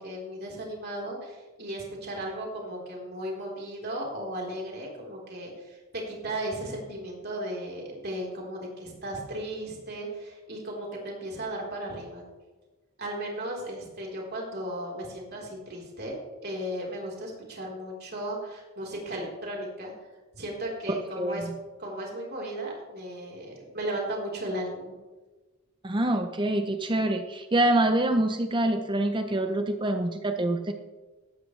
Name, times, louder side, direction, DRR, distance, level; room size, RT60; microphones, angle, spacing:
voice 1, 0.0-12.2 13.0-16.2 16.4-19.9 20.3-21.5 21.8-24.9, right 1 dB, 45° right, -2 dB, 4.0 m, -35 dB
voice 2, 25.8-30.7, right 1 dB, 20° right, 6 dB, 0.7 m, -26 dB
16.5 x 12.5 x 3.3 m, 1.2 s
head